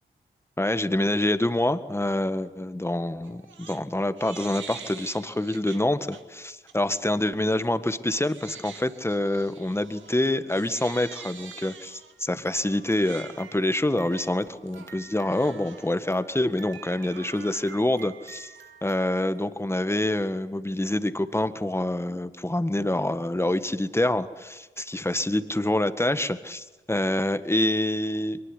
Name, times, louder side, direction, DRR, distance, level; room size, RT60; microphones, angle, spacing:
voice 1, 0.6-18.5 18.8-28.4, left 1 dB, 10° left, 11 dB, 1.7 m, -26 dB
Crying sobbing, 3.2-3.8 4.2-6.2 6.7-7.0 7.5-19.4, right 7 dB, 75° right, 2.1 m, -46 dB
22.5 x 20.0 x 10.0 m, 1.2 s
supercardioid pair, 45°, 20 cm